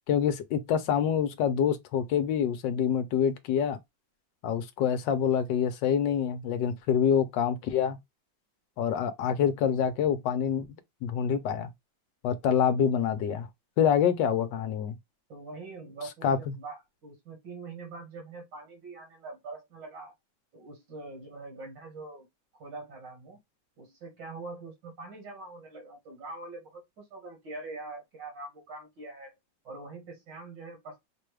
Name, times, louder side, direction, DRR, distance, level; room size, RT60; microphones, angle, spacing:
voice 1, 0.1-3.8 4.4-8.0 8.8-10.7 11.0-11.7 12.2-13.5 13.8-14.9 16.2-16.5, left 8 dB, 75° left, 1.3 m, -26 dB
voice 2, 15.3-20.1 20.5-22.3 22.6-23.4 23.8-29.4 29.6-31.1, right 3 dB, 75° right, 2.2 m, -43 dB
5.1 x 2.3 x 3.1 m
omnidirectional pair, 2.0 m